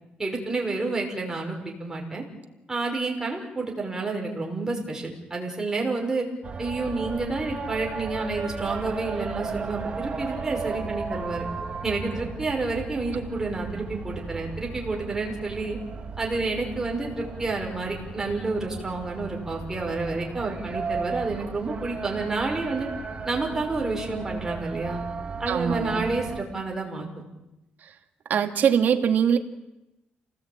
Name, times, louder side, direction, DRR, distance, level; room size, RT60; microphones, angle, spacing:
voice 1, 0.2-2.2 2.7-6.3 6.6-11.4 11.8-15.8 16.2-22.9 23.2-25.0 25.4-27.1, right 3 dB, 15° right, 0 dB, 5.7 m, -29 dB
sound 1, 6.4-26.4, right 4 dB, 30° right, 2.5 m, -35 dB
voice 2, 25.5-26.0 27.8-27.9 28.3-29.4, right 8 dB, 55° right, 5 dB, 2.3 m, -22 dB
28.5 x 19.0 x 8.9 m, 0.97 s
cardioid pair, 150°, 4 cm